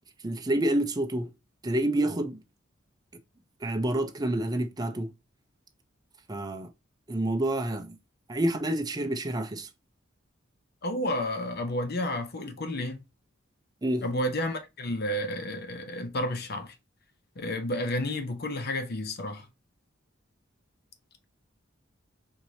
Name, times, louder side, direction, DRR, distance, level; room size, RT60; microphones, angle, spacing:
voice 1, 0.2-1.3 1.6-2.4 3.6-5.1 6.3-6.7 7.1-8.0 8.3-9.7 13.8-14.1, right 1 dB, 20° right, 0.5 m, -28 dB
voice 2, 10.8-13.0 14.0-16.7 17.4-19.4, left 1 dB, 55° left, 0.7 m, -31 dB
4.7 x 2.8 x 2.6 m
head